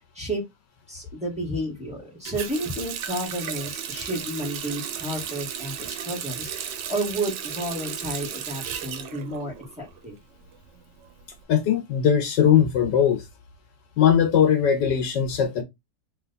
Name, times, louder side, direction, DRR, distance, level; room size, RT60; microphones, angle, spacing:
voice 1, 0.9-10.1, right 1 dB, 5° right, 1.7 m, -31 dB
Water tap faucet, 2.3-10.0 10.3-11.4, right 9 dB, 85° right, 1.3 m, -34 dB
voice 2, 11.5-13.3 14.0-15.6, left 8 dB, 80° left, 1.6 m, -20 dB
3.4 x 3.2 x 4.0 m
omnidirectional pair, 1.9 m